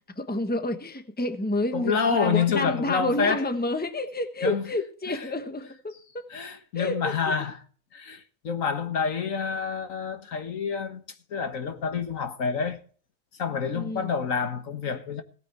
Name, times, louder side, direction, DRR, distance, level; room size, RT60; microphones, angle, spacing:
voice 1, 0.2-6.2 6.7-7.1 13.7-14.1, left 2 dB, 5° left, 1.1 m, -29 dB
voice 2, 1.7-3.4 4.4-4.6 5.1-5.3 6.3-7.6 7.9-11.0 11.3-12.8 13.4-15.2, left 6 dB, 75° left, 1.8 m, -28 dB
17.0 x 9.0 x 4.4 m
omnidirectional pair, 1.4 m